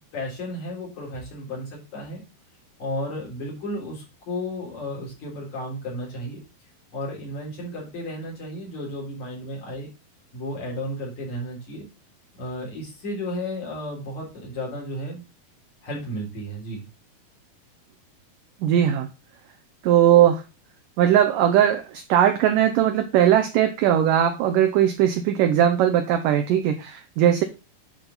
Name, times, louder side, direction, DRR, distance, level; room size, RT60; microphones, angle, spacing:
voice 1, 0.1-2.2 2.8-6.4 6.9-9.9 10.3-11.8 12.4-15.2 15.8-16.8, left 1 dB, 45° left, -3 dB, 4.9 m, -33 dB
voice 2, 18.6-19.1 19.8-20.4 21.0-27.4, right 10 dB, 75° right, 6 dB, 2.0 m, -19 dB
10.0 x 4.6 x 3.9 m, 0.28 s
omnidirectional pair, 4.6 m